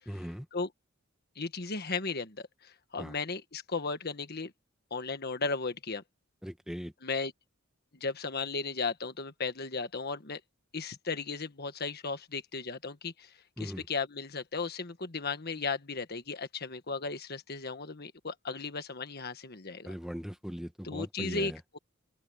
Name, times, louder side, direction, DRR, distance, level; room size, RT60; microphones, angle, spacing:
voice 1, 0.1-0.5 3.0-3.2 6.4-6.9 13.6-13.9 19.8-21.6, equal, ahead, 1.4 m, -39 dB
voice 2, 1.3-4.5 4.9-6.0 7.0-7.3 7.9-10.4 10.7-19.9 20.8-21.8, left 4 dB, 50° left, 1.5 m, -35 dB
open air
head